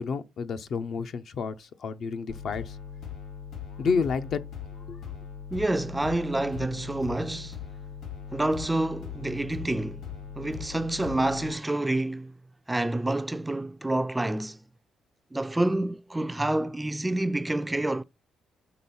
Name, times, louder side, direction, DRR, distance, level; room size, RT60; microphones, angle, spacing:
voice 1, 0.0-2.8 3.8-4.4 4.9-5.0, left 5 dB, 60° left, 0.6 m, -30 dB
sound 1, 2.3-11.5, left 7 dB, 80° left, 4.2 m, -40 dB
voice 2, 5.5-7.6 8.3-10.1 10.4-12.3 12.7-14.6 15.3-18.0, right 1 dB, 10° right, 0.3 m, -28 dB
5.9 x 3.7 x 5.5 m
cardioid pair, 90°, 0 cm